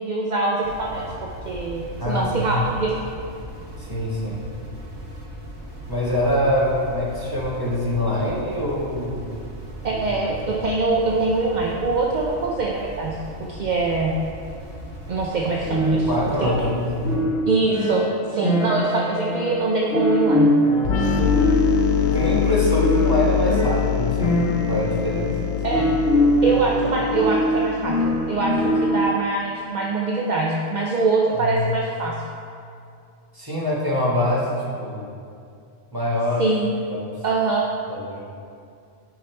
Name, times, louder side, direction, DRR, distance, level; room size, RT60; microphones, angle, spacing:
voice 1, 0.0-2.9 9.8-14.1 15.1-16.7 17.5-20.5 25.6-25.9 26.4-32.1 36.4-36.7 37.2-37.7, right 3 dB, 45° right, -2 dB, 0.6 m, -23 dB
sound 1, 0.6-17.1, equal, 90° right, 2.6 m, -38 dB
voice 2, 2.0-2.6 3.8-4.4 5.9-9.2 9.9-10.0 15.9-17.3 21.9-25.3 25.7-25.9 31.4-31.7 33.3-35.1 35.9-36.4 36.9-37.1 37.9-38.2, left 1 dB, 15° right, -5 dB, 1.4 m, -24 dB
sound 2, 15.7-29.2, equal, 60° left, 1.3 m, -23 dB
sound 3, 20.8-28.4, left 9 dB, 85° left, 1.0 m, -24 dB
9.0 x 5.7 x 4.4 m, 2.4 s
omnidirectional pair, 1.3 m